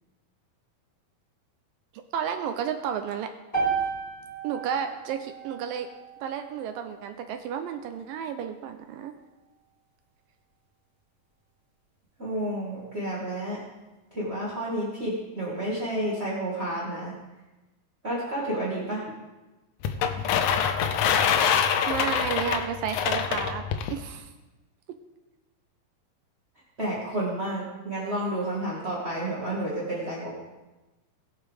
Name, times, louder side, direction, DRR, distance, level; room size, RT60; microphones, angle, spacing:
voice 1, 2.1-3.3 4.4-5.9 6.2-9.1 21.9-23.6 23.9-24.3, right 8 dB, 80° right, 7 dB, 2.2 m, -32 dB
sound 1, 3.5-7.7, right 5 dB, 10° left, 3.9 m, -33 dB
voice 2, 12.2-13.6 14.1-17.2 18.0-19.0 26.8-30.3, right 1 dB, 30° right, -7 dB, 1.1 m, -30 dB
sound 2, 19.8-23.9, left 8 dB, 90° left, 1.7 m, -25 dB
20.5 x 6.9 x 3.4 m, 1.1 s
omnidirectional pair, 4.4 m